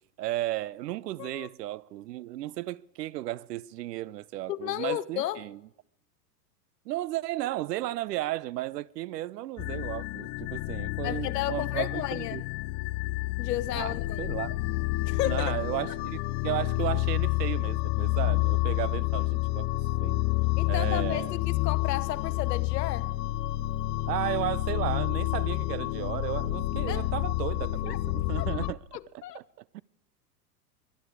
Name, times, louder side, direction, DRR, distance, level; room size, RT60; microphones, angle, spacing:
voice 1, 0.2-5.6 6.9-12.4 13.7-14.6 15.2-19.7 20.0-20.3 20.7-21.4 24.1-28.8 29.1-29.8, right 16 dB, 70° right, 0.6 m, -34 dB
voice 2, 4.5-5.4 11.0-12.4 13.4-14.3 15.1-15.5 20.6-23.1 26.9-27.0 27.9-28.0 28.4-28.5 28.9-29.4, left 14 dB, 70° left, 1.0 m, -33 dB
sound 1, 9.6-28.7, left 18 dB, 35° left, 0.4 m, -29 dB
22.0 x 11.0 x 4.8 m
hypercardioid pair, 100°, 50 cm